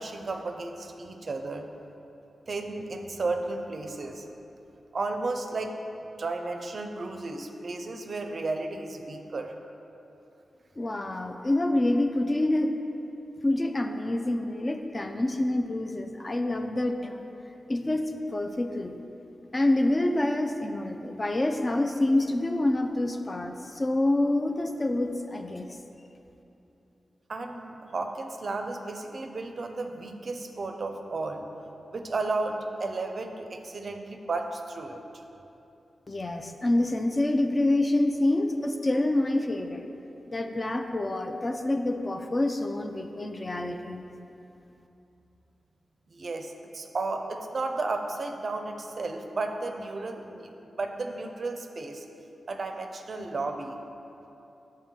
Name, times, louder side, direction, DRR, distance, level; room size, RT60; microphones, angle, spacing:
voice 1, 0.0-1.7 2.5-4.2 4.9-9.5 27.3-31.5 31.9-35.0 46.1-52.0 52.5-53.7, right 3 dB, 55° right, 5 dB, 0.4 m, -33 dB
voice 2, 10.8-12.7 13.4-17.2 17.7-18.0 18.3-19.0 19.5-25.8 36.1-39.8 40.3-44.2, left 1 dB, 30° left, 5 dB, 0.4 m, -27 dB
5.5 x 5.2 x 3.7 m, 2.9 s
cardioid pair, 70°, 0 cm